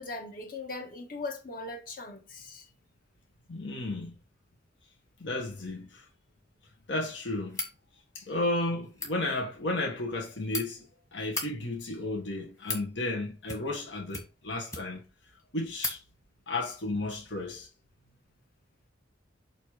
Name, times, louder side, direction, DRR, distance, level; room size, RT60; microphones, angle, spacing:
voice 1, 0.0-2.7, left 3 dB, 50° left, 1.5 m, -39 dB
voice 2, 3.5-4.2 5.2-6.0 6.9-7.6 8.1-10.9 11.1-15.0 15.5-16.0 16.5-17.7, left 2 dB, 70° left, 1.5 m, -33 dB
sound 1, 7.5-7.8 8.8-9.1 10.1-10.6 11.2-11.5 12.3-12.9 13.4-13.8 14.1-15.1 15.4-15.5 15.8-16.0, left 2 dB, 15° left, 1.9 m, -36 dB
8.3 x 3.0 x 4.9 m
head